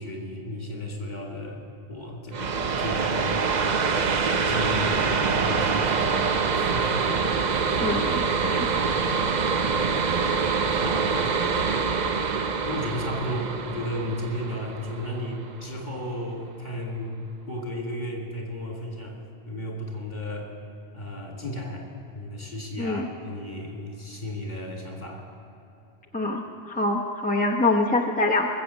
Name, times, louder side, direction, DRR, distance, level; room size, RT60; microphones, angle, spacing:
voice 1, 0.0-1.6 1.9-3.4 4.4-7.1 10.6-11.2 12.6-17.1 17.5-19.2 19.5-20.5 20.9-21.9 22.1-25.3, left 1 dB, 40° left, -1 dB, 2.6 m, -34 dB
sound 1, 2.3-15.7, right 5 dB, 45° right, 0.7 m, -25 dB
voice 2, 7.8-8.7 22.8-23.1 26.1-28.5, left 2 dB, 10° left, -1 dB, 0.8 m, -25 dB
21.0 x 7.7 x 7.1 m, 2.8 s
omnidirectional pair, 1.1 m